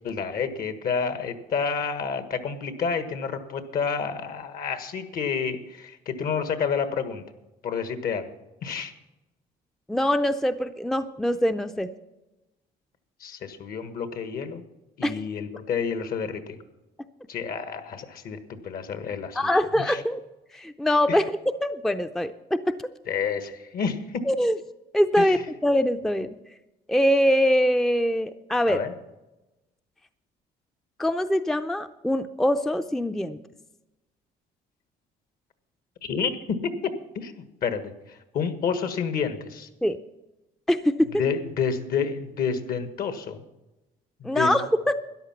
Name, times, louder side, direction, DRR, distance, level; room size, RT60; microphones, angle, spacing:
voice 1, 0.0-7.2 7.6-8.3 8.6-8.9 13.2-14.6 15.0-16.6 17.3-19.5 19.9-20.0 21.1-21.2 23.1-24.2 25.2-25.4 28.7-28.9 36.0-39.7 41.1-43.4 44.2-44.5, left 6 dB, 60° left, 10 dB, 1.5 m, -29 dB
voice 2, 9.9-11.9 15.0-15.2 19.3-20.2 20.5-22.8 24.2-24.6 24.9-26.4 26.9-28.8 31.0-33.4 39.8-40.0 40.7-41.1 44.2-44.9, equal, ahead, 9 dB, 0.5 m, -23 dB
13.0 x 10.5 x 5.9 m, 1.0 s
cardioid pair, 110°, 17 cm